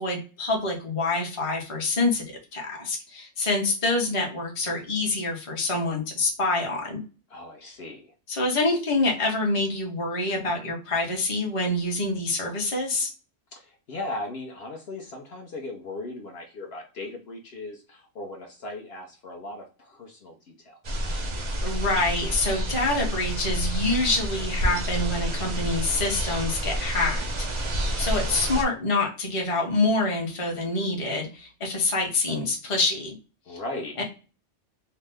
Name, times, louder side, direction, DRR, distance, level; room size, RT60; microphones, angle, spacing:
voice 1, 0.0-2.2 2.5-7.0 8.3-13.1 21.6-33.2 34.0-34.1, left 2 dB, 30° left, 0 dB, 0.8 m, -26 dB
voice 2, 7.3-8.1 13.5-21.1 33.5-34.0, left 2 dB, 60° left, 0 dB, 0.9 m, -38 dB
sound 1, 20.8-28.6, right 1 dB, 45° right, 0.3 m, -29 dB
2.7 x 2.1 x 3.2 m, 0.34 s
omnidirectional pair, 1.2 m